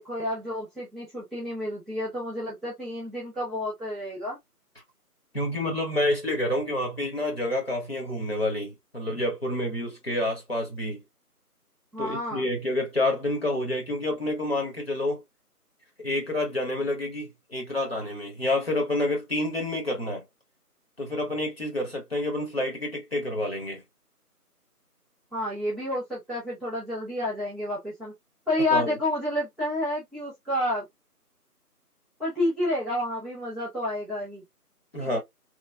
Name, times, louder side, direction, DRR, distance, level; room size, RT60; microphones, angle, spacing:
voice 1, 0.0-4.4 11.9-12.4 25.3-28.1 28.5-30.8 32.2-34.4 35.0-35.2, left 1 dB, ahead, 0.7 m, -30 dB
voice 2, 5.3-11.0 12.0-15.2 16.0-20.2 21.0-23.8 28.7-28.9 34.9-35.2, left 1 dB, 40° left, 1.4 m, -28 dB
3.2 x 3.1 x 2.4 m
figure-of-eight pair, 165°, 47 cm